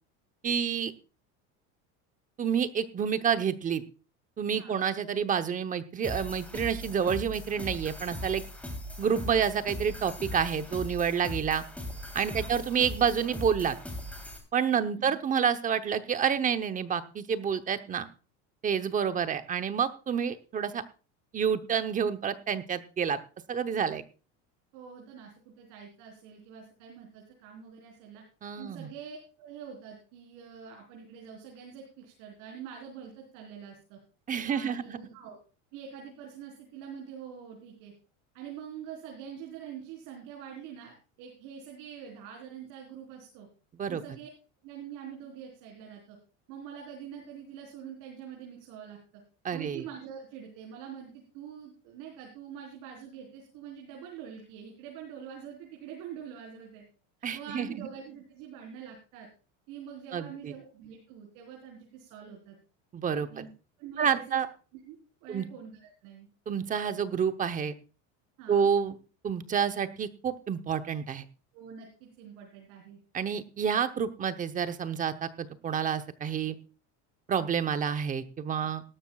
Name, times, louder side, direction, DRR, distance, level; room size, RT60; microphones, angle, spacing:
voice 1, 0.4-0.9 2.4-3.8 4.4-8.4 9.0-11.6 12.1-13.8 14.5-18.1 18.6-20.8 21.3-23.2 23.5-24.0 28.4-28.9 34.3-35.0 43.8-44.0 49.4-49.8 57.2-57.9 60.1-60.5 62.9-63.5 64.0-64.5 65.3-65.5 66.5-67.7 68.5-68.9 69.2-71.2 73.1-76.5 77.3-78.8, right 7 dB, 25° right, 10 dB, 0.8 m, -29 dB
voice 2, 4.5-4.8 12.3-12.6 14.9-15.2 24.7-28.2 28.6-34.0 34.5-35.4 35.7-37.9 38.3-43.5 43.9-44.3 44.6-46.2 46.5-49.2 49.5-56.8 57.3-59.3 59.7-62.6 63.3-63.5 63.8-64.4 64.9-66.3 68.4-68.7 71.5-73.0, right 8 dB, 60° right, 0 dB, 4.2 m, -45 dB
sound 1, 6.0-14.4, left 1 dB, 5° left, 3.1 m, -39 dB
17.5 x 13.5 x 2.3 m, 0.35 s
cardioid pair, 150°, 35 cm